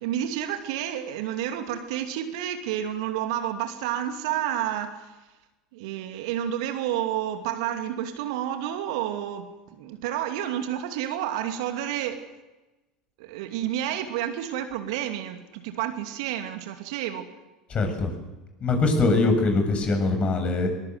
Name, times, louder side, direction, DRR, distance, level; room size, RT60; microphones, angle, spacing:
voice 1, 0.0-5.1 5.7-12.3 13.2-17.3, right 11 dB, 65° right, 2.6 m, -30 dB
voice 2, 17.7-18.1 18.6-20.7, left 3 dB, 35° left, 7.4 m, -22 dB
22.0 x 21.0 x 8.0 m
figure-of-eight pair, 75°, 3 cm